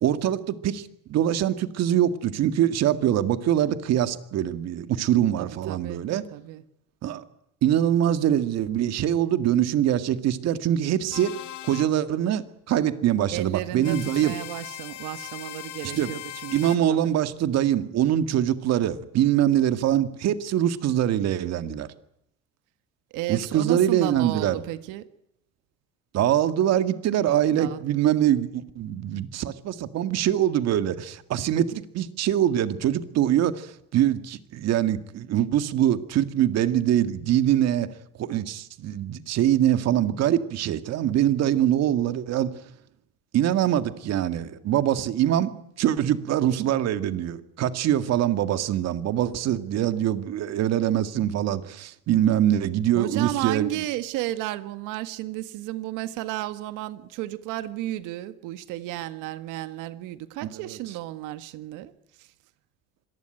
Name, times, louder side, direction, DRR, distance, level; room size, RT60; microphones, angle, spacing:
voice 1, 0.0-6.2 7.0-7.2 7.6-11.3 11.6-14.3 16.0-16.1 16.5-21.9 23.3-24.6 26.1-37.9 38.2-42.5 43.3-53.8 60.4-60.7, right 11 dB, 55° right, 2.0 m, -23 dB
voice 2, 5.4-6.0 6.3-6.6 13.3-17.1 23.1-25.1 27.5-27.8 52.9-61.9 62.2-62.3, right 15 dB, 70° right, 1.8 m, -33 dB
sound 1, 11.1-11.9 13.8-16.8, left 14 dB, 70° left, 2.0 m, -39 dB
25.5 x 18.5 x 9.1 m
supercardioid pair, 110°, 31 cm